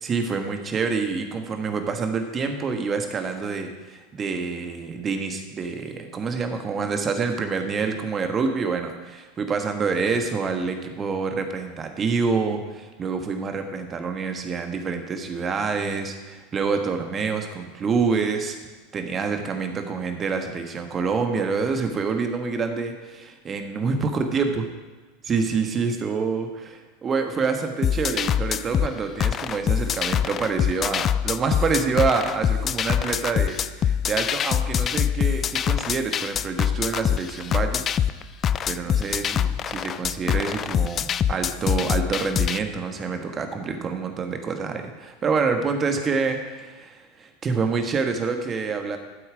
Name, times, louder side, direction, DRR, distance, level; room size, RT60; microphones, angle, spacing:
voice 1, 0.0-18.6 18.9-24.6 25.2-37.9 38.7-49.0, right 5 dB, 25° right, 6 dB, 1.4 m, -27 dB
sound 1, 27.8-42.6, left 9 dB, 30° left, 0.4 m, -24 dB
12.5 x 7.8 x 5.1 m, 1.2 s
figure-of-eight pair, 80°, 0 cm